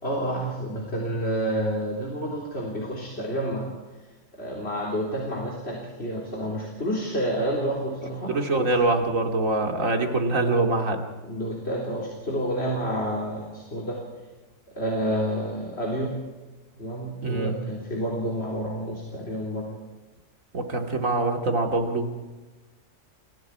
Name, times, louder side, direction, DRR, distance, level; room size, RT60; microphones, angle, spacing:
voice 1, 0.0-3.7 4.3-8.7 11.2-14.0 14.7-16.2 16.8-19.8, equal, 50° left, -2 dB, 4.0 m, -29 dB
voice 2, 8.3-11.0 17.2-17.5 20.5-22.1, right 2 dB, 80° right, 3 dB, 2.9 m, -24 dB
29.0 x 23.0 x 4.9 m, 1.2 s
omnidirectional pair, 1.4 m